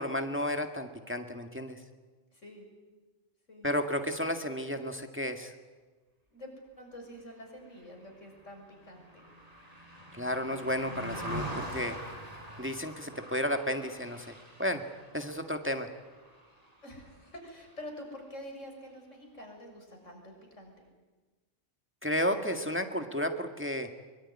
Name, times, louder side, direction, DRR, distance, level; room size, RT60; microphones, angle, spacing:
voice 1, 0.0-1.8 3.6-5.5 10.1-12.0 12.6-14.8 15.1-15.9 22.0-23.9, equal, 10° right, 6 dB, 1.8 m, -32 dB
voice 2, 2.3-2.7 3.5-3.7 6.3-6.5 6.8-9.2 16.8-20.7, equal, 80° left, 2 dB, 7.1 m, -47 dB
Car passing by, 7.7-17.3 17.6-17.9, right 1 dB, 30° right, 5.4 m, -44 dB
24.5 x 24.0 x 9.8 m, 1.3 s
omnidirectional pair, 1.3 m